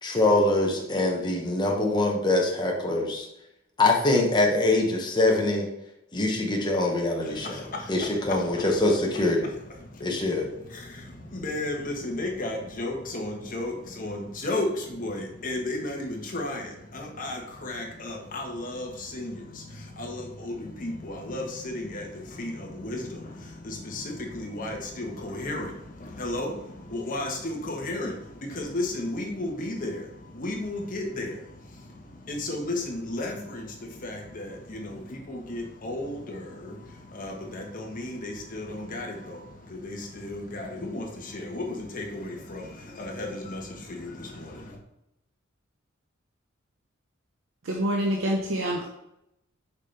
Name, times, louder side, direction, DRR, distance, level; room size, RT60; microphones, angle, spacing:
voice 1, 0.0-3.3 3.8-5.7 6.1-7.6 7.9-9.5 10.0-10.5, left 2 dB, 20° left, 0 dB, 1.1 m, -24 dB
voice 2, 11.4-13.7 14.0-14.2 14.4-14.7 15.0-15.2 15.4-16.1 16.3-16.6 17.2-17.4 17.6-18.9 19.1-19.3 20.0-20.1 20.5-20.6 20.8-20.9 21.3-21.4 22.4-22.5 22.8-23.0 24.3-25.6 26.2-26.5 27.1-28.1 28.6-29.9 30.4-31.3 32.3-33.3 35.3-36.1 37.2-37.3 38.0-38.6 38.9-39.1 40.2-40.7 40.9-41.0 41.5-41.7 41.9-42.0 43.0-43.3, left 2 dB, 40° left, 1 dB, 1.3 m, -32 dB
voice 3, 47.6-48.9, right 1 dB, 65° right, 0 dB, 0.8 m, -26 dB
6.5 x 5.2 x 3.3 m, 0.84 s
head